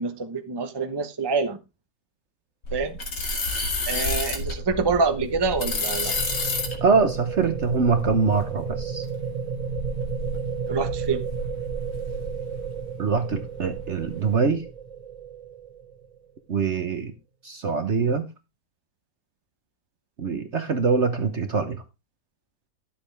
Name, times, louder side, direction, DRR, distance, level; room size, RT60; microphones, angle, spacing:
voice 1, 0.0-1.6 2.7-3.0 3.9-6.1 10.6-11.2, right 4 dB, 20° right, 0.8 m, -26 dB
sound 1, 2.6-12.8 13.2-14.2, left 2 dB, 75° left, 2.8 m, -31 dB
sound 2, 4.4-16.4, right 6 dB, 65° right, 0.4 m, -34 dB
voice 2, 6.8-9.1 13.0-14.6 16.5-17.1 17.4-18.3 20.2-21.8, right 5 dB, 45° right, 1.1 m, -23 dB
12.5 x 7.8 x 3.4 m
omnidirectional pair, 1.9 m